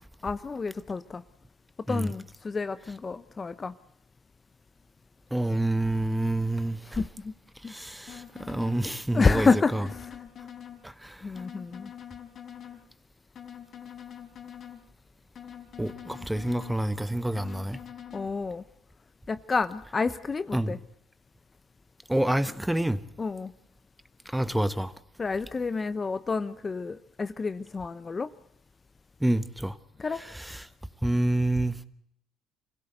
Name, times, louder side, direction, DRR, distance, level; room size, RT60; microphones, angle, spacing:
voice 1, 0.2-1.2 1.9-3.7 7.0-7.3 7.6-7.7 9.1-10.2 11.2-11.9 18.1-18.6 19.3-20.8 23.2-23.5 25.2-28.3 30.0-30.2, left 4 dB, 30° left, 0.9 m, -29 dB
voice 2, 5.3-6.8 7.7-8.2 8.5-9.8 11.0-11.1 15.8-17.8 20.5-20.8 22.1-23.0 24.3-24.9 29.2-29.7 30.5-30.6 31.0-31.7, right 1 dB, 5° right, 1.3 m, -27 dB
sound 1, 8.1-8.8 9.3-10.8 11.3-12.8 13.3-14.8 15.3-16.8 17.3-18.3, left 9 dB, 50° left, 3.9 m, -44 dB
25.5 x 16.5 x 8.0 m
supercardioid pair, 85°, 0 cm